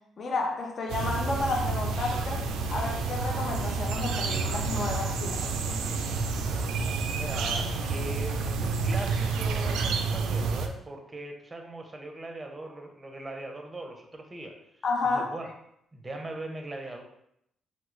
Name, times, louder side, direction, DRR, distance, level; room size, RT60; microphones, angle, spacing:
voice 1, 0.2-5.5 14.8-15.3, left 3 dB, 50° left, 1 dB, 0.7 m, -31 dB
sound 1, 0.9-10.7, right 4 dB, 85° right, 0.3 m, -29 dB
voice 2, 7.1-14.5 15.0-15.5 15.9-17.0, right 2 dB, 25° right, 3 dB, 0.6 m, -40 dB
3.0 x 2.3 x 3.1 m, 0.74 s
cardioid pair, 75°, 0 cm